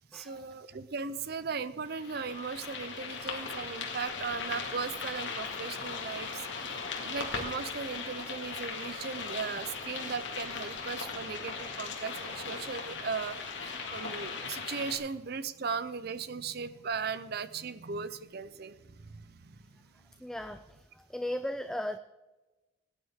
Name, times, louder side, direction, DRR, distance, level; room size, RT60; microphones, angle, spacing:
voice 1, 0.1-6.3 6.6-20.1, right 5 dB, 60° right, 14 dB, 0.6 m, -38 dB
sound 1, 1.9-15.0, left 5 dB, 75° left, 2.1 m, -38 dB
voice 2, 20.2-22.0, left 1 dB, 5° left, 9 dB, 0.3 m, -36 dB
17.5 x 9.9 x 3.7 m, 1.1 s
head